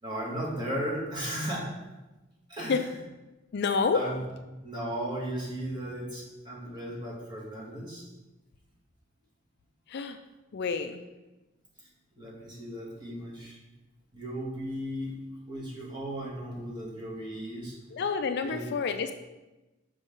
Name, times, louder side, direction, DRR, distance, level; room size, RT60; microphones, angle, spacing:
voice 1, 0.0-1.7 2.5-2.9 3.9-4.2 4.6-8.1 11.8-11.9 12.2-13.6 14.1-15.1 15.5-17.8 18.4-18.7, right 1 dB, 25° right, -4 dB, 1.8 m, -36 dB
voice 2, 3.5-4.0 9.9-10.2 10.5-11.0 17.9-19.1, left 5 dB, 55° left, 8 dB, 0.4 m, -28 dB
6.7 x 5.2 x 3.7 m, 1.1 s
head